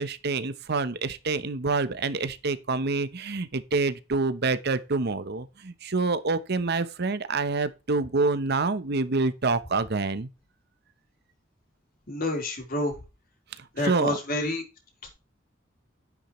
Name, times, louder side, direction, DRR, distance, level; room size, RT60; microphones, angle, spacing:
voice 1, 0.0-10.3 13.6-14.1, right 3 dB, 55° right, 0.9 m, -27 dB
voice 2, 12.1-12.9 13.8-14.6, left 1 dB, 50° left, 3.9 m, -28 dB
10.0 x 9.9 x 3.1 m
head